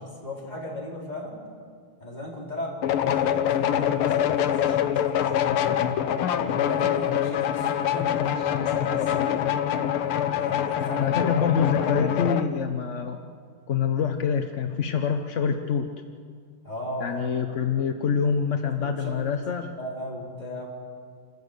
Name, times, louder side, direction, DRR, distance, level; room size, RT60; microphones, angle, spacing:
voice 1, 0.0-1.4 2.0-5.7 6.5-9.1 10.0-11.1 16.6-17.3 18.6-19.3 19.8-20.7, left 1 dB, 20° left, -4 dB, 4.6 m, -36 dB
sound 1, 2.8-12.5, left 10 dB, 85° left, 1.8 m, -25 dB
voice 2, 11.0-13.2 13.7-15.9 17.0-19.7, left 6 dB, 55° left, 6 dB, 0.8 m, -26 dB
27.5 x 14.0 x 8.1 m, 2.1 s
omnidirectional pair, 2.3 m